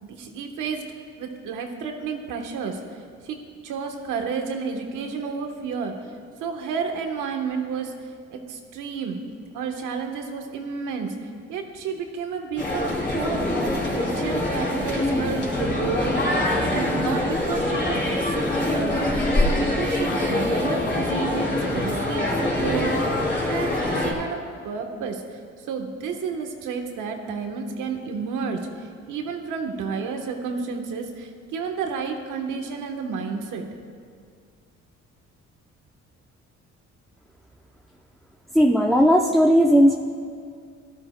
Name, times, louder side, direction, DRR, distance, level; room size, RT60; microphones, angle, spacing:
voice 1, 0.0-0.8 1.2-3.0 3.2-3.4 3.6-6.0 6.4-9.2 9.5-13.5 13.9-16.4 16.7-19.1 19.6-33.6, right 5 dB, 90° right, 4 dB, 1.2 m, -31 dB
sound 1, 12.6-24.1, left 1 dB, 35° left, 3.2 m, -24 dB
voice 2, 38.5-40.0, equal, ahead, 1 dB, 0.6 m, -16 dB
18.0 x 12.5 x 2.2 m, 2.2 s
cardioid pair, 90°, 30 cm